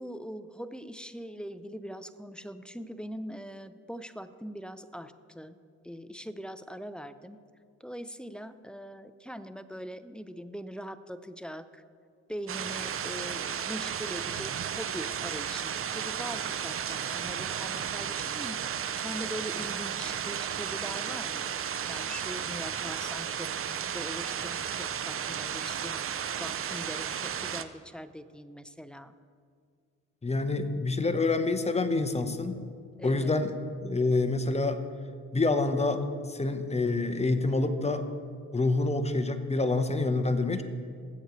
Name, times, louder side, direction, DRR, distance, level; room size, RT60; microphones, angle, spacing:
voice 1, 0.0-5.6 5.8-7.4 7.8-11.8 12.3-21.5 21.9-29.1 33.0-33.4, equal, 5° left, 11 dB, 0.6 m, -42 dB
sound 1, 12.5-27.6, right 8 dB, 45° right, 0.6 m, -34 dB
voice 2, 30.2-32.6 33.0-33.5 33.8-34.8 35.3-38.1 38.5-40.6, left 3 dB, 20° left, 8 dB, 1.0 m, -27 dB
20.5 x 8.1 x 3.2 m, 2.1 s
cardioid pair, 70°, 31 cm